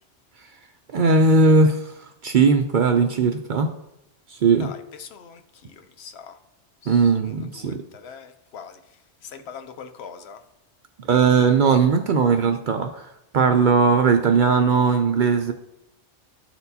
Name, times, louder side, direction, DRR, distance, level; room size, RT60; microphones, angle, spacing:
voice 1, 0.9-3.7 4.3-4.7 6.9-7.8 11.0-15.5, right 4 dB, 60° right, 0.5 m, -19 dB
voice 2, 4.6-6.4 6.8-8.8 9.2-10.4, left 6 dB, 70° left, 0.9 m, -42 dB
12.5 x 4.3 x 2.7 m
omnidirectional pair, 1.2 m